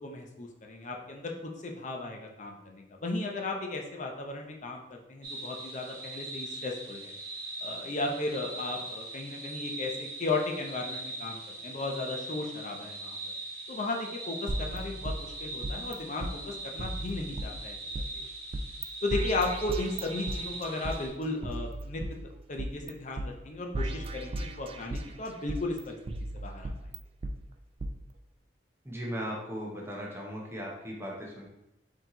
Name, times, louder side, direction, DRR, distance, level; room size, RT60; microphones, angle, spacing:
voice 1, 0.0-7.1 7.6-13.2 13.7-17.8 18.1-18.2 19.0-22.0 22.5-26.0 26.4-26.7, left 2 dB, 45° left, 2 dB, 0.7 m, -35 dB
sound 1, 5.2-21.1, right 2 dB, 60° right, 1.5 m, -41 dB
sound 2, 14.5-15.9 16.2-16.3 16.8-18.0 18.5-18.8 19.1-21.0 21.4-22.9 23.2-23.3 23.7-25.1 25.5-27.3 27.8-27.9, right 1 dB, 30° right, 0.3 m, -36 dB
voice 2, 28.8-31.5, equal, 15° right, -3 dB, 0.9 m, -37 dB
4.5 x 2.9 x 3.8 m, 0.85 s
head